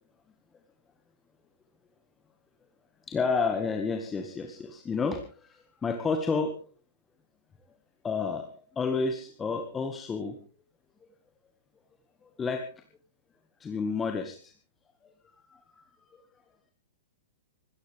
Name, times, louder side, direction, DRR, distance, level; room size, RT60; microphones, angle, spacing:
voice 1, 3.1-6.5 8.0-8.5 8.7-10.4 12.2-12.7 13.6-14.5 15.5-15.8, left 4 dB, 15° left, 4 dB, 1.9 m, -30 dB
25.5 x 14.5 x 3.6 m, 0.40 s
hypercardioid pair, 115°, 0 cm